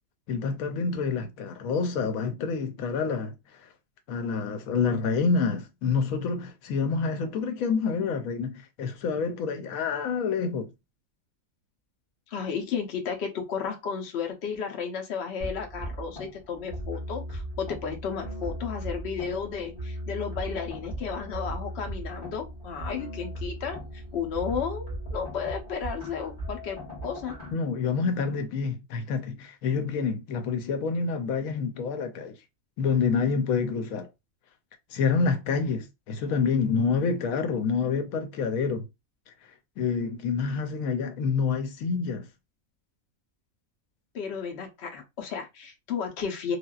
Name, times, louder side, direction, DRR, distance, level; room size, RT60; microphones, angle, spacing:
voice 1, 0.3-3.7 4.1-10.7 27.5-32.4 32.8-34.1 34.9-38.9 39.8-42.3, left 5 dB, 85° left, 1.1 m, -27 dB
voice 2, 12.3-26.8 27.0-27.4 44.1-46.6, left 6 dB, 55° left, 0.9 m, -33 dB
sound 1, 15.4-27.5, right 1 dB, 30° left, 1.5 m, -37 dB
3.3 x 2.3 x 2.3 m
omnidirectional pair, 1.4 m